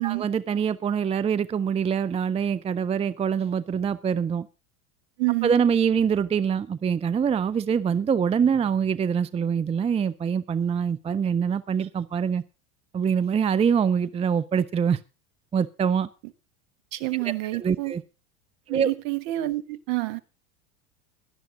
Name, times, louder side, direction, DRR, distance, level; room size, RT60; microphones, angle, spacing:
voice 1, 0.0-4.5 5.4-12.4 12.9-15.0 15.5-16.1 17.2-17.3 17.6-18.0 18.7-18.9, right 7 dB, 15° right, 0.6 m, -24 dB
voice 2, 5.2-5.5 16.9-17.9 18.7-20.2, right 19 dB, 50° right, 1.3 m, -28 dB
17.0 x 12.0 x 3.7 m
hypercardioid pair, 85°, 42 cm